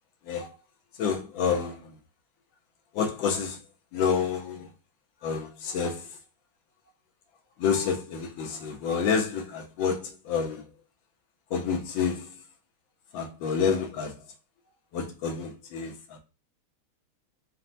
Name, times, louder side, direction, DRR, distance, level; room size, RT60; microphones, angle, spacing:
voice 1, 0.2-0.5 1.0-1.9 2.9-3.6 3.9-4.7 5.2-6.2 7.6-10.7 11.5-12.4 13.1-14.2 14.9-16.2, left 6 dB, 70° left, 1.4 m, -29 dB
4.3 x 2.1 x 3.9 m
omnidirectional pair, 2.4 m